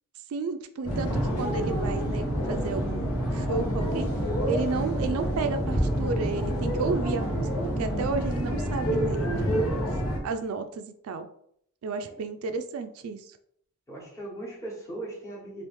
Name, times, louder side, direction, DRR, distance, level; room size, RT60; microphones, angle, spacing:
voice 1, 0.3-1.1 1.4-4.1 4.5-7.5 7.8-9.3 9.5-11.3 11.8-13.3, right 4 dB, 70° right, 8 dB, 0.3 m, -32 dB
sound 1, 0.8-10.2, equal, 80° left, 0.9 m, -28 dB
voice 2, 13.9-15.7, right 2 dB, 15° left, -4 dB, 1.1 m, -39 dB
3.0 x 2.4 x 3.4 m, 0.68 s
head